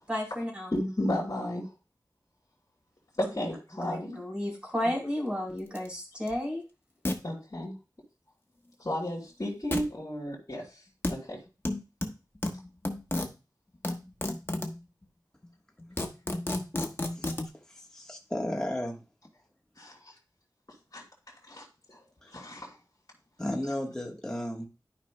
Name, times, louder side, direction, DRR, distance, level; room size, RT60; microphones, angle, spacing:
voice 1, 0.1-0.7 3.8-6.6, left 1 dB, 15° right, -2 dB, 3.8 m, -32 dB
voice 2, 0.7-1.7 3.2-4.2 7.2-7.7 8.8-10.7 11.1-11.4 19.8-20.1 20.9-21.0 21.5-22.0 22.3-22.7, left 1 dB, 50° left, -5 dB, 3.0 m, -33 dB
sound 1, 5.7-5.9 6.3-6.4 7.0-7.2 9.7-9.9 11.0-11.1 11.6-13.3 13.8-14.8 15.4-15.5 15.8-17.5, left 1 dB, 30° left, 1.2 m, -31 dB
voice 3, 17.7-19.0 22.2-22.3 23.4-24.7, left 1 dB, 10° left, -1 dB, 1.4 m, -34 dB
12.5 x 5.2 x 2.2 m, 0.30 s
wide cardioid pair, 60°, 7 cm